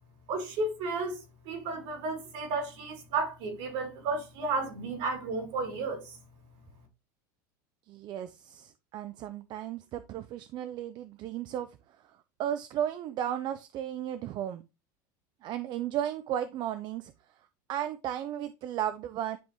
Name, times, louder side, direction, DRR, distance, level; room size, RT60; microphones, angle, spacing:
voice 1, 0.3-6.0, right 3 dB, 65° right, 3.0 m, -33 dB
voice 2, 7.9-11.7 12.4-14.6 15.4-17.1 17.7-19.4, right 11 dB, 45° right, 0.5 m, -34 dB
10.0 x 3.5 x 3.0 m
supercardioid pair, 120°, 10 cm